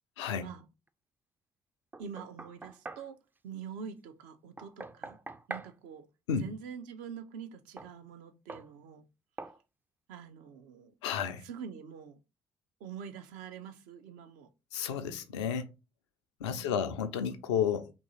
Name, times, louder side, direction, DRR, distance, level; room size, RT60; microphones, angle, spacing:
voice 1, 0.2-0.5 6.3-6.5 11.0-11.4 14.7-15.7 16.4-17.9, left 7 dB, 80° left, 0.4 m, -32 dB
Knock, 1.9-3.1 4.6-5.7 7.8-7.9 8.5-8.7 9.4-9.6, right 3 dB, 15° right, 0.3 m, -43 dB
voice 2, 2.0-3.2 3.4-5.2 5.5-6.0 6.4-9.1 10.1-10.9 11.4-12.2 12.8-14.5 16.5-17.0, right 7 dB, 65° right, 0.5 m, -45 dB
2.9 x 2.6 x 4.0 m
figure-of-eight pair, 45°, 15 cm